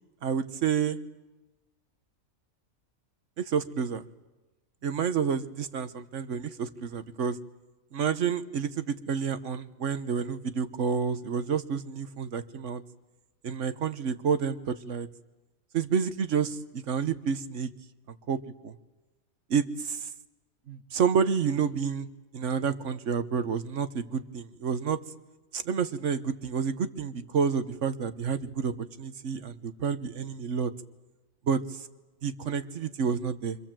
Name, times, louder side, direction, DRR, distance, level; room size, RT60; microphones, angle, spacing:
voice 1, 0.2-1.0 3.4-4.0 4.8-7.4 7.9-12.8 13.4-15.1 15.7-17.7 18.3-18.7 19.5-20.1 20.7-22.1 22.3-25.0 25.5-28.7 29.0-30.7 31.5-31.9 32.2-33.6, right 6 dB, 60° right, 10 dB, 1.4 m, -29 dB
29.0 x 25.5 x 7.6 m, 1.1 s
omnidirectional pair, 1.5 m